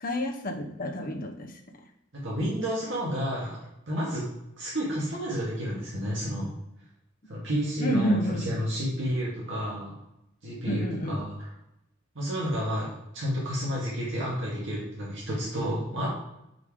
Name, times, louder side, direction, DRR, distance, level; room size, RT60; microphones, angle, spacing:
voice 1, 0.0-1.5 7.8-8.5 10.7-11.2, equal, 45° left, 2 dB, 1.0 m, -29 dB
voice 2, 2.1-3.6 3.9-4.3 4.6-6.5 7.3-9.9 10.4-11.5 12.2-12.9 13.1-16.1, equal, 70° right, -6 dB, 2.1 m, -30 dB
5.4 x 5.0 x 5.0 m, 0.85 s
head